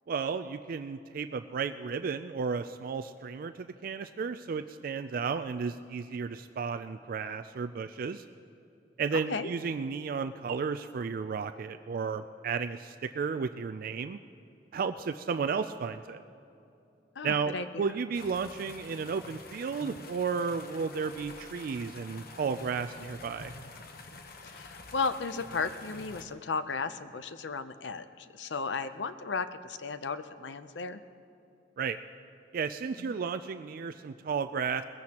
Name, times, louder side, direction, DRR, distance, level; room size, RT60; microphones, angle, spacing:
voice 1, 0.1-8.2 9.0-14.2 14.7-16.2 17.2-23.5 31.8-32.0 32.5-34.8, right 5 dB, 55° right, 10 dB, 0.3 m, -33 dB
voice 2, 9.1-9.5 17.2-17.8 24.4-31.0 33.0-33.2, left 4 dB, 85° left, 11 dB, 0.6 m, -35 dB
sound 1, 18.1-26.2, left 3 dB, 60° left, 1.0 m, -48 dB
21.0 x 15.5 x 2.9 m, 2.7 s
head